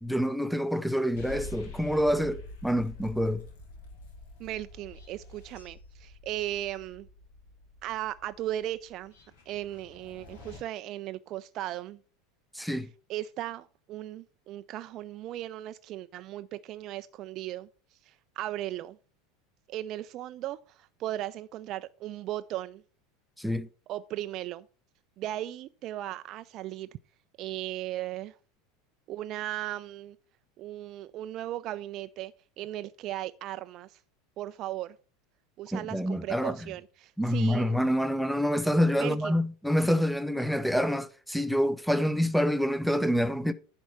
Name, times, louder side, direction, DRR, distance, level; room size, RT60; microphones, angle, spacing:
voice 1, 0.0-3.4 12.5-12.9 23.4-23.7 35.7-36.6 37.2-43.5, equal, ahead, 0.7 m, -27 dB
sound 1, 1.2-10.6, left 2 dB, 65° left, 2.8 m, -47 dB
voice 2, 4.4-7.1 7.8-9.1 9.5-12.0 12.6-12.8 13.1-19.0 19.7-22.8 23.9-24.7 25.2-26.9 27.4-28.3 29.1-30.2 30.6-34.0 34.4-35.0 35.6-37.8 39.0-39.4, right 14 dB, 45° right, 0.3 m, -37 dB
10.5 x 4.4 x 5.3 m
figure-of-eight pair, 80°, 0 cm